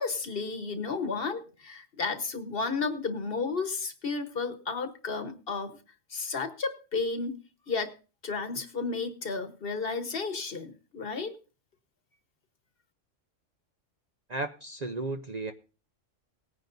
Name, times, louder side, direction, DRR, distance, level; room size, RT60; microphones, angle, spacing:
voice 1, 0.0-5.8 6.1-7.4 7.7-7.9 8.2-11.3, left 4 dB, 50° left, 7 dB, 1.3 m, -32 dB
voice 2, 14.3-15.5, right 2 dB, 40° right, 6 dB, 0.6 m, -34 dB
19.0 x 9.8 x 2.6 m, 0.34 s
omnidirectional pair, 1.3 m